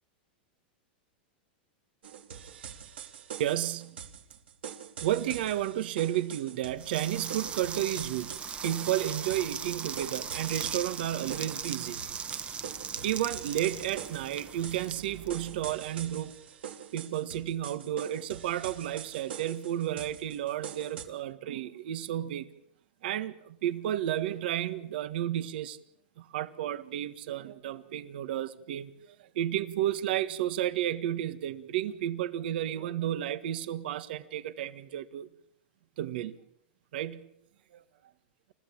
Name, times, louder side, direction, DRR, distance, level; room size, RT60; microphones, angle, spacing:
sound 1, 2.0-21.0, right 8 dB, 85° right, 3.5 m, -44 dB
voice 1, 3.4-4.0 5.0-12.0 13.0-16.4 16.9-22.5 23.0-25.8 26.2-35.3 36.0-36.4 36.9-37.2 37.7-37.8, right 12 dB, 70° right, 1.7 m, -32 dB
sound 2, 6.8-15.8, right 6 dB, 20° right, 1.1 m, -39 dB
29.5 x 15.0 x 8.7 m
supercardioid pair, 130°, 5 cm